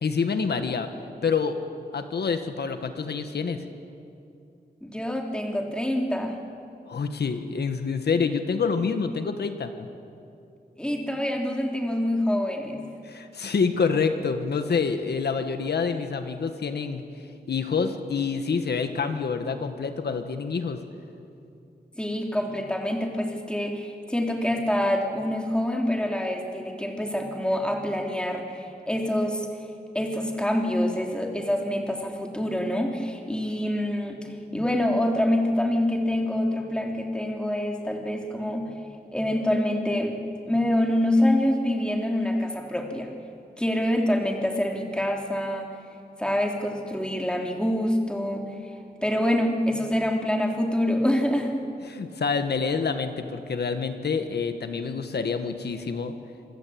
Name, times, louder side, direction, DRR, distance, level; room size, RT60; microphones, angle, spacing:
voice 1, 0.0-0.9 1.2-1.6 1.9-3.7 6.9-9.9 13.0-17.0 17.5-20.8 34.5-34.6 51.8-56.1, left 5 dB, 90° left, 7 dB, 1.7 m, -27 dB
voice 2, 4.8-6.3 10.8-12.9 22.0-29.5 29.9-38.7 39.1-40.2 40.5-43.1 43.6-45.7 46.2-48.4 49.0-51.6, left 1 dB, 5° left, 1 dB, 3.6 m, -26 dB
26.0 x 25.0 x 8.8 m, 2.6 s
wide cardioid pair, 100°, 17 cm